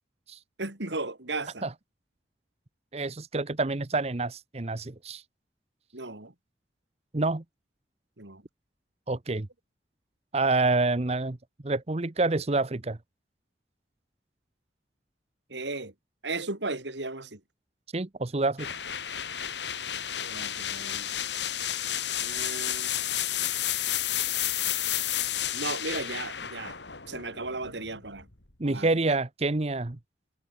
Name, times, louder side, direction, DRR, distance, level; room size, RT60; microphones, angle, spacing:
voice 1, 0.6-1.6 5.9-6.3 8.2-8.4 15.5-15.9 16.2-17.4 20.2-21.1 22.2-22.9 25.5-26.8 27.1-28.3 28.6-28.9, right 3 dB, 85° right, 3.8 m, -35 dB
voice 2, 2.9-5.2 7.1-7.4 9.1-9.5 10.3-11.4 11.6-13.0 17.9-18.7 28.6-30.0, right 3 dB, 35° right, 0.9 m, -27 dB
sound 1, 18.6-28.3, left 11 dB, 80° left, 3.3 m, -31 dB
head